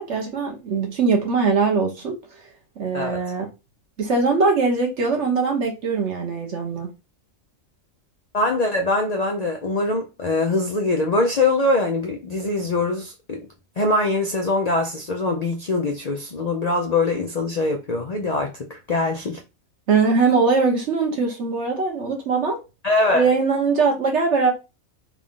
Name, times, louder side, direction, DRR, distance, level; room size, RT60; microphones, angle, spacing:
voice 1, 0.0-2.2 2.8-3.5 4.0-6.9 19.9-22.6 23.1-24.5, right 4 dB, 55° right, 1.3 m, -21 dB
voice 2, 8.3-13.5 13.8-19.4 22.8-23.3, left 2 dB, 85° left, 0.3 m, -23 dB
3.6 x 2.4 x 3.7 m
omnidirectional pair, 1.5 m